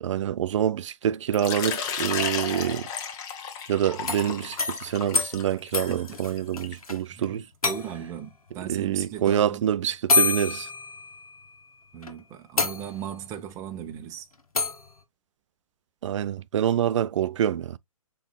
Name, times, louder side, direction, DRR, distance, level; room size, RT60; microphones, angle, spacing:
voice 1, 0.0-2.9 3.7-7.4 8.7-10.7 16.0-17.8, right 10 dB, 55° right, 0.4 m, -26 dB
Water / Liquid, 1.3-6.9, left 6 dB, 20° left, 0.7 m, -33 dB
sound 1, 3.9-7.0 7.2-7.3 7.6-8.2 9.3-9.4 10.1-11.5 12.0-12.1 12.6-13.3 14.6-14.9, left 3 dB, 85° left, 1.4 m, -27 dB
voice 2, 5.7-6.2 7.1-9.6 11.9-14.3, right 10 dB, 15° right, 0.6 m, -37 dB
7.0 x 3.2 x 2.2 m
hypercardioid pair, 145°, 18 cm